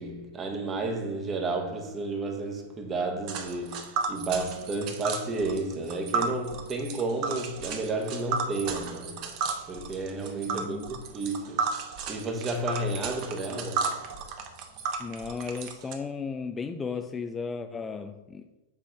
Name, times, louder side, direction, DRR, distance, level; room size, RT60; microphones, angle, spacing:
voice 1, 0.0-9.4 9.7-11.7 12.1-14.1, right 2 dB, 20° right, 1.1 m, -32 dB
Tick, 3.3-15.9, right 5 dB, 45° right, 0.9 m, -33 dB
voice 2, 10.5-10.9 15.0-18.5, left 5 dB, 15° left, 0.3 m, -35 dB
7.5 x 3.4 x 4.4 m
hypercardioid pair, 115°, 0 cm